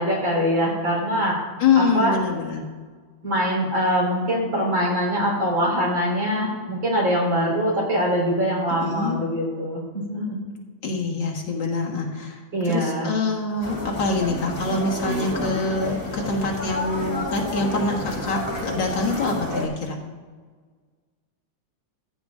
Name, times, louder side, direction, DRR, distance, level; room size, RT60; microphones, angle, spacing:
voice 1, 0.0-1.4 1.8-2.1 3.2-10.5 12.5-13.1, equal, 65° right, -3 dB, 4.5 m, -23 dB
voice 2, 1.6-2.6 8.7-9.2 10.8-20.0, left 4 dB, 60° left, -2 dB, 2.2 m, -25 dB
sound 1, 13.6-19.7, left 1 dB, 10° left, 2.2 m, -30 dB
15.0 x 9.4 x 3.6 m, 1.5 s
omnidirectional pair, 2.3 m